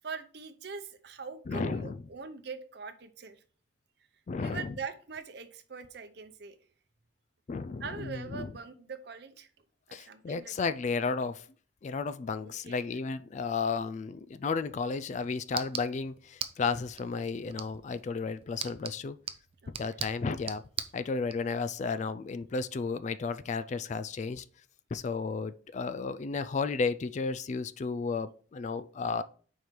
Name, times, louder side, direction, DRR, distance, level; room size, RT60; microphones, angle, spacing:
voice 1, 0.0-3.4 4.4-6.6 7.8-9.5 9.9-10.6 12.4-12.8 19.6-20.0, right 5 dB, 60° right, 0.7 m, -42 dB
voice 2, 1.5-2.0 4.3-4.7 7.5-8.5 9.9-11.5 11.8-19.2 19.7-20.6 20.9-24.4 24.9-29.2, left 4 dB, 40° left, 0.3 m, -33 dB
sound 1, 14.7-21.4, right 7 dB, 30° right, 0.4 m, -42 dB
4.7 x 4.5 x 5.1 m
head